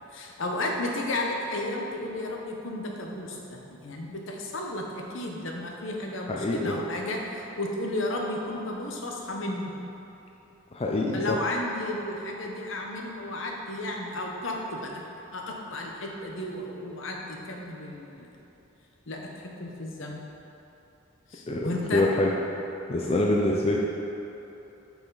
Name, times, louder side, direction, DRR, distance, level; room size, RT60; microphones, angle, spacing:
voice 1, 0.1-9.7 11.1-15.0 15.3-18.3 19.1-20.2 21.3-22.1, left 1 dB, 65° left, 0 dB, 0.9 m, -33 dB
voice 2, 6.3-6.7 10.7-11.4 21.5-22.3 22.9-23.8, left 2 dB, 30° left, -2 dB, 0.4 m, -25 dB
8.8 x 5.0 x 3.9 m, 3.0 s
head